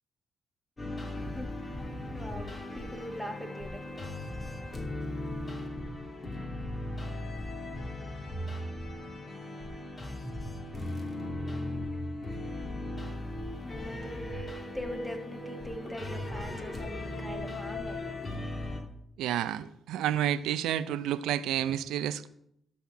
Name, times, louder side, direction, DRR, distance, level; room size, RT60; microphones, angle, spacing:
sound 1, 0.8-18.8, left 1 dB, 30° left, 2.6 m, -37 dB
voice 1, 1.1-4.3 5.0-5.7 13.6-18.3, equal, ahead, 1.8 m, -43 dB
voice 2, 19.2-22.3, right 11 dB, 90° right, 0.5 m, -30 dB
11.5 x 4.3 x 7.0 m
cardioid pair, 70°, 0 cm